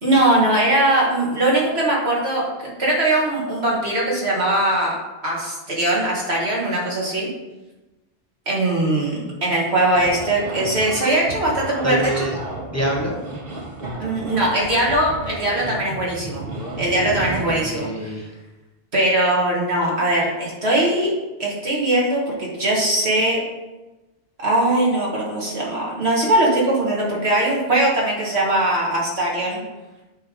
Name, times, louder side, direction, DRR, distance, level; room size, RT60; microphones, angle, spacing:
voice 1, 0.0-5.0 5.2-7.3 8.5-12.2 14.0-16.4 16.8-17.9 18.9-21.1 21.4-23.4 24.4-29.6, right 1 dB, 90° right, -4 dB, 2.4 m, -20 dB
sound 1, 9.9-17.6, right 2 dB, 65° right, 1.6 m, -32 dB
voice 2, 11.8-12.3 12.6-13.3 17.4-18.3, right 1 dB, 15° left, -1 dB, 0.9 m, -26 dB
8.7 x 3.6 x 5.3 m, 1.1 s
omnidirectional pair, 1.1 m